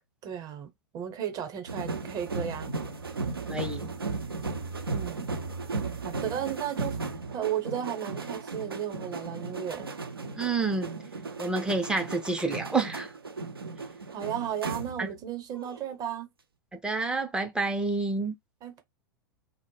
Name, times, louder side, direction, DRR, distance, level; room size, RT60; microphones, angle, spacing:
voice 1, 0.2-2.7 4.9-5.3 6.0-7.0 7.3-9.9 14.1-16.3 18.6-18.8, right 9 dB, 30° right, 0.7 m, -34 dB
sound 1, 1.7-15.2 15.5-15.9, right 3 dB, 85° right, 0.4 m, -36 dB
voice 2, 3.5-3.9 10.4-10.9 11.4-13.1 15.0-15.1 16.8-18.3, right 3 dB, 5° right, 0.4 m, -28 dB
2.1 x 2.0 x 3.0 m
figure-of-eight pair, 95°, 12 cm